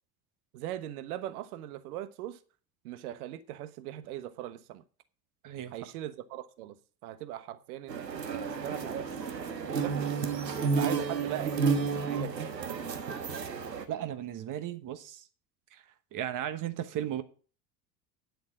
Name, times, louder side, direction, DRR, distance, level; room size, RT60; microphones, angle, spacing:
voice 1, 0.5-2.4 2.8-4.8 5.7-6.8 7.0-9.2 9.7-10.4 10.6-12.8, right 13 dB, 60° right, 1.2 m, -40 dB
sound 1, 7.9-13.8, right 5 dB, 85° right, 1.3 m, -31 dB
voice 2, 13.9-15.2 15.7-15.8 16.1-17.2, right 11 dB, 40° right, 1.2 m, -35 dB
9.6 x 8.0 x 6.0 m
figure-of-eight pair, 70°, 49 cm